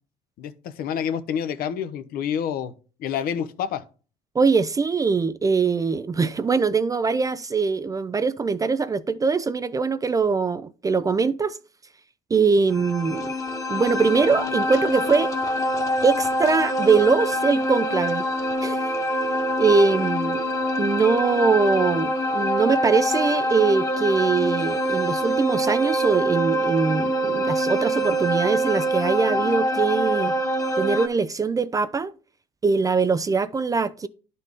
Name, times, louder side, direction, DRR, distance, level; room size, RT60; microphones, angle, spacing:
voice 1, 0.4-2.7 3.0-3.8, left 8 dB, 65° left, 0.7 m, -28 dB
voice 2, 4.4-11.6 12.3-13.3 13.7-15.3 16.0-18.2 18.6-18.9 19.6-20.4 20.8-30.3 30.8-32.1 32.6-34.1, right 4 dB, 20° right, 0.3 m, -22 dB
sound 1, 12.7-31.1, equal, 20° left, 1.1 m, -25 dB
10.5 x 4.1 x 3.5 m
supercardioid pair, 95°, 17 cm